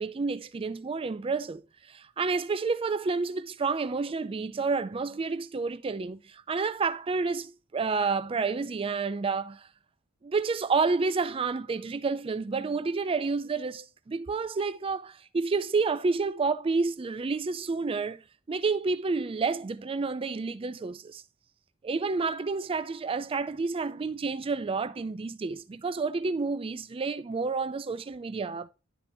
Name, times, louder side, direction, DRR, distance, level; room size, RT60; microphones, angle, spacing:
voice 1, 0.0-1.6 1.9-9.7 10.2-18.2 18.5-21.2 21.8-28.7, right 4 dB, 25° right, 0.4 m, -29 dB
11.5 x 4.4 x 3.5 m
head